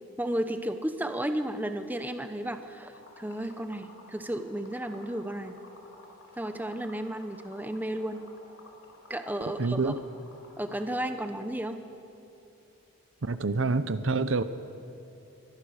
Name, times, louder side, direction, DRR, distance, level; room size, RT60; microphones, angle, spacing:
voice 1, 0.2-5.6 6.4-8.2 9.1-9.9 10.6-11.8, right 1 dB, 10° right, 8 dB, 0.8 m, -33 dB
Liquid, 2.9-10.9, left 2 dB, 70° left, 4.0 m, -53 dB
voice 2, 9.6-10.0 13.2-14.4, right 3 dB, 60° right, 13 dB, 0.7 m, -27 dB
24.0 x 18.5 x 6.5 m, 2.8 s
head